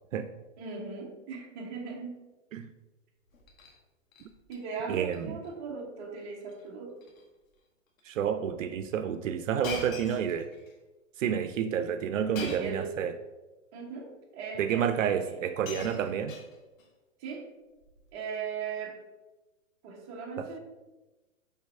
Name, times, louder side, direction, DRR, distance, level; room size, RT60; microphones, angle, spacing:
voice 1, 0.6-2.2 4.5-7.0 12.4-12.9 13.7-15.4 17.2-17.5 18.1-19.0 19.8-20.6, right 5 dB, 20° right, -2 dB, 1.1 m, -39 dB
Shatter, 3.3-3.8 4.1-4.6 4.9-5.2 5.4-5.5 6.4-6.6 7.0-7.2 8.0-8.1 9.6-10.7 12.3-12.8 13.8-13.9 15.0-15.1 15.3-16.9 17.8-18.1, left 4 dB, 85° left, 1.8 m, -42 dB
voice 2, 4.9-5.4 8.0-10.5 11.2-13.1 14.6-16.4 20.4-20.5, right 8 dB, 75° right, 9 dB, 0.6 m, -30 dB
5.8 x 4.1 x 5.4 m, 1.1 s
hypercardioid pair, 170°, 39 cm